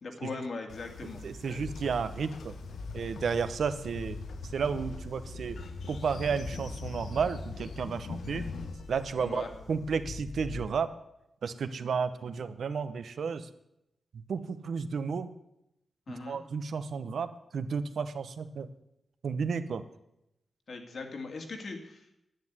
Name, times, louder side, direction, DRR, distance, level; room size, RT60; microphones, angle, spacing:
voice 1, 0.0-1.7 9.2-9.5 16.1-16.4 20.7-22.2, left 3 dB, 50° left, 4 dB, 2.2 m, -40 dB
Train, 0.7-10.7, left 3 dB, 85° left, 1.2 m, -41 dB
voice 2, 1.2-2.5 2.9-4.2 4.5-5.6 5.9-8.5 8.9-10.9 11.4-13.5 14.3-15.3 16.3-18.7 19.2-19.8, right 6 dB, 75° right, 11 dB, 0.9 m, -32 dB
10.5 x 9.7 x 9.5 m, 0.84 s
wide cardioid pair, 175°, 0 cm